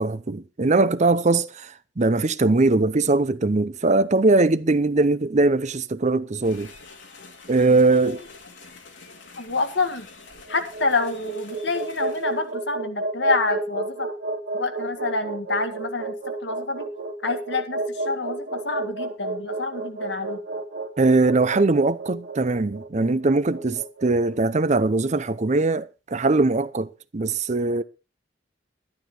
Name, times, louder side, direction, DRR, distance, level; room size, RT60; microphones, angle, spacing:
voice 1, 0.0-6.7 7.5-8.2 21.0-27.8, right 3 dB, 40° right, 0.7 m, -21 dB
sound 1, 6.4-12.5, left 4 dB, 85° left, 2.8 m, -47 dB
voice 2, 9.4-10.1 10.5-14.1 14.5-16.9 17.2-20.4, left 3 dB, 65° left, 1.9 m, -27 dB
sound 2, 10.4-24.6, right 3 dB, 65° right, 2.1 m, -31 dB
12.0 x 11.5 x 4.4 m
head